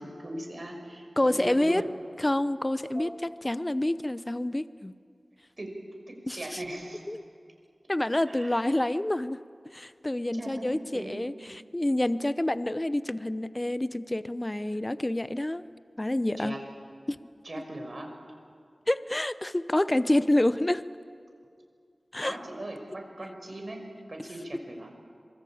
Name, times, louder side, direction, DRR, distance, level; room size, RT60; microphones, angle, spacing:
voice 1, 0.0-1.9 2.9-3.1 5.6-5.7 6.1-7.1 8.3-8.6 10.3-11.2 16.4-16.6 17.4-18.1 22.2-24.9, right 1 dB, 50° right, 3 dB, 5.5 m, -39 dB
voice 2, 1.2-1.8 2.2-4.9 6.3-6.6 7.1-7.2 7.9-9.4 9.7-15.7 16.0-16.6 17.1-17.2 18.9-20.8 22.1-22.4, left 1 dB, 20° left, 14 dB, 0.7 m, -28 dB
26.0 x 24.0 x 8.7 m, 2.2 s
wide cardioid pair, 80°, 0 cm